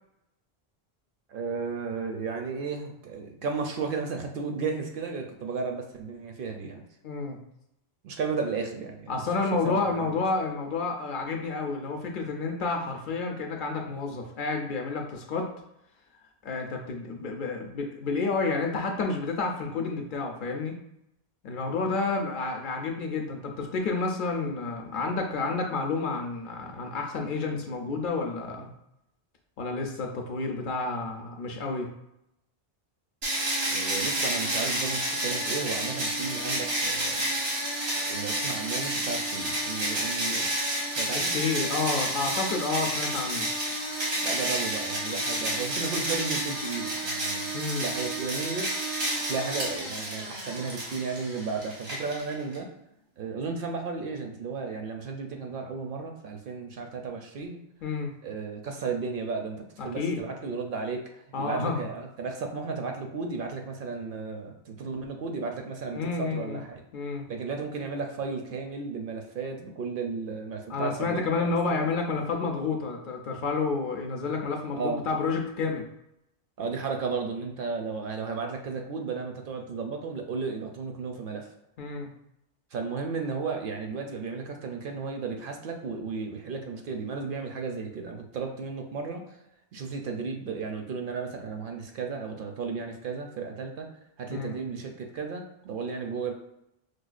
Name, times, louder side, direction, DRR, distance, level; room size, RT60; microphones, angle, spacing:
voice 1, 1.3-6.8 8.0-9.2 9.6-10.1 33.7-37.2 38.0-40.5 41.0-41.3 44.2-47.5 47.8-48.7 49.3-52.7 53.2-57.6 58.2-66.8 67.3-71.2 71.7-71.9 74.7-75.0 76.6-81.5 82.7-89.4 89.7-93.9 94.2-96.3, right 4 dB, 65° right, 3 dB, 0.7 m, -34 dB
voice 2, 7.0-7.4 9.1-15.5 16.4-20.8 21.4-28.7 29.6-31.9 41.3-43.5 47.5-47.9 57.8-58.1 59.8-60.2 61.3-61.9 65.9-66.6 66.9-67.3 70.7-75.9 81.8-82.1 94.3-94.6, left 4 dB, 60° left, 2 dB, 0.6 m, -30 dB
sound 1, 33.2-52.6, right 1 dB, 85° right, 1.4 m, -30 dB
4.8 x 2.2 x 2.4 m, 0.81 s
omnidirectional pair, 1.0 m